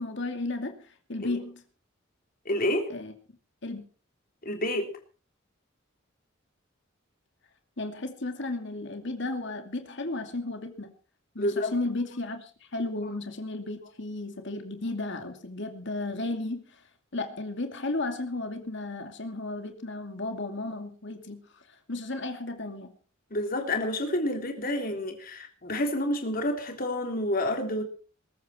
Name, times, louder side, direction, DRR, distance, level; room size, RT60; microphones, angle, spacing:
voice 1, 0.0-1.6 2.9-3.1 3.6-3.8 7.8-10.9 11.3-16.8 17.1-23.0, left 2 dB, 65° left, 2.6 m, -34 dB
voice 2, 2.5-2.9 4.4-4.9 11.4-11.7 23.3-27.8, left 1 dB, 45° left, 3.5 m, -29 dB
21.5 x 13.0 x 4.4 m
head